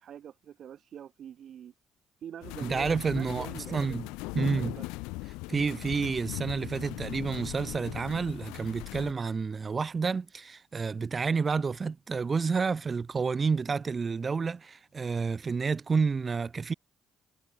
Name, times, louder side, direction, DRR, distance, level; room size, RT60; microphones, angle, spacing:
voice 1, 0.0-1.7 2.2-4.0 4.4-4.9, right 9 dB, 60° right, 2.6 m, -45 dB
sound 1, 2.4-9.1, left 25 dB, 85° left, 1.2 m, -39 dB
voice 2, 2.6-4.1 4.3-4.7 5.5-16.7, right 5 dB, 35° right, 1.6 m, -29 dB
supercardioid pair, 70°, 0 cm